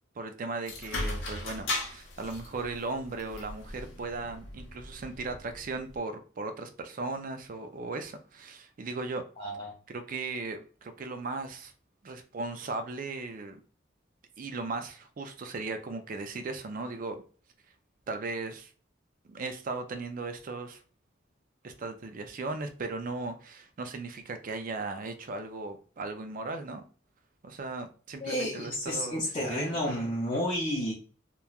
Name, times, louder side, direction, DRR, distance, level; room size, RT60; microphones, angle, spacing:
voice 1, 0.2-9.2 9.9-11.7 12.0-13.6 14.4-17.2 18.1-18.7 19.2-20.8 21.6-26.8 27.4-30.0, right 3 dB, 45° right, 0.4 m, -37 dB
sound 1, 0.7-6.0, left 2 dB, 85° left, 0.7 m, -38 dB
voice 2, 9.4-9.7 28.2-30.9, equal, 30° left, 0.5 m, -31 dB
3.1 x 2.2 x 2.3 m
head